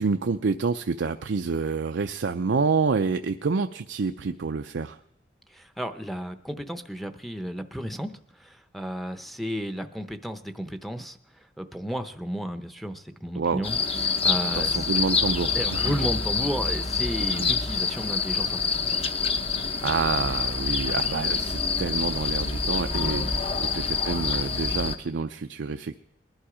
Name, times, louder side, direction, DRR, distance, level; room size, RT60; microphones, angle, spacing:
voice 1, 0.0-5.0 13.4-13.6 14.5-15.9 17.3-17.5 19.8-26.0, right 4 dB, 85° right, 7 dB, 0.5 m, -28 dB
voice 2, 5.5-8.1 8.4-11.2 11.6-14.7 15.5-19.0, equal, ahead, 8 dB, 0.7 m, -33 dB
sound 1, 13.6-25.0, left 5 dB, 35° left, 0.8 m, -26 dB
20.5 x 11.5 x 4.9 m, 0.76 s
head